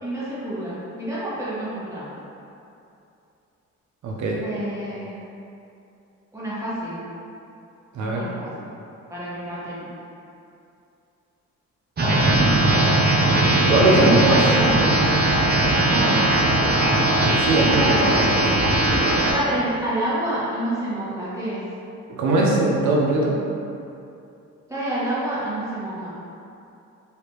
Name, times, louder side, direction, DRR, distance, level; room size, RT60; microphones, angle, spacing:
voice 1, 0.0-2.1 4.4-5.1 6.3-7.0 8.0-8.5 9.1-9.9 12.2-12.7 13.8-14.8 15.8-16.8 17.8-18.1 19.3-21.6 24.7-26.1, right 1 dB, 10° right, -11 dB, 1.4 m, -28 dB
voice 2, 4.0-4.4 7.9-8.2 13.6-14.5 17.2-18.4 22.1-23.4, right 2 dB, 70° right, -2 dB, 0.7 m, -20 dB
sound 1, 12.0-19.3, right 1 dB, 30° right, 0.7 m, -19 dB
3.2 x 2.8 x 3.0 m, 2.7 s
cardioid pair, 90°, 30 cm